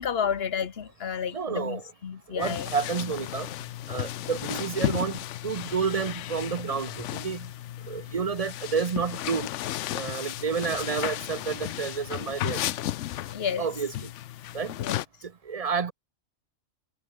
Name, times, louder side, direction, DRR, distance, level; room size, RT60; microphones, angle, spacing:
voice 1, 0.0-2.7 13.3-13.7 14.8-15.0, left 7 dB, 50° left, 1.2 m, -31 dB
voice 2, 1.3-1.8 2.3-3.5 3.9-7.5 7.9-9.5 9.9-12.6 13.6-14.1 14.5-14.7 15.2-15.9, right 6 dB, 45° right, 0.5 m, -30 dB
sound 1, 2.4-15.0, left 13 dB, 70° left, 0.8 m, -34 dB
omnidirectional pair, 1.4 m